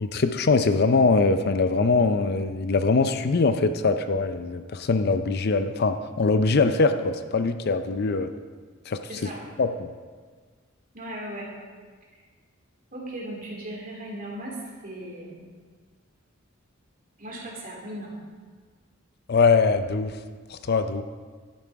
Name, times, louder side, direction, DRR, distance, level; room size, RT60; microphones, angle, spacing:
voice 1, 0.0-8.3 8.9-9.3 9.6-9.9 19.3-20.2 20.5-21.0, left 4 dB, 50° left, 9 dB, 0.5 m, -22 dB
voice 2, 9.1-9.4 10.9-11.5 12.9-15.4 17.2-18.2, right 1 dB, 40° right, -2 dB, 2.7 m, -37 dB
11.5 x 9.7 x 4.6 m, 1.6 s
head